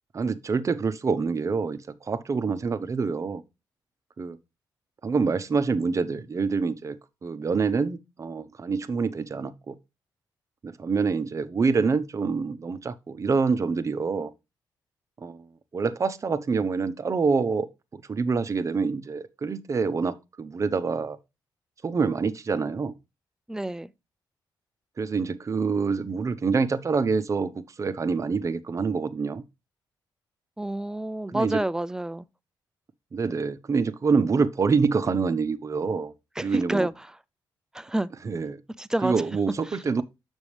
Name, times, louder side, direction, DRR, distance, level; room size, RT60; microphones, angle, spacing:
voice 1, 0.1-3.4 4.2-4.4 5.0-7.0 7.2-9.7 10.6-14.3 15.2-15.4 15.7-17.7 17.9-21.2 21.8-22.9 25.0-27.5 27.8-29.4 31.3-31.6 33.1-36.1 36.4-36.9 38.2-38.6 39.0-40.0, right 4 dB, 40° right, 0.7 m, -26 dB
voice 2, 23.5-23.9 30.6-32.3 36.4-37.2 37.7-38.1 38.8-39.1 39.7-40.0, right 1 dB, 5° right, 0.4 m, -29 dB
7.0 x 6.2 x 3.2 m
cardioid pair, 85°, 8 cm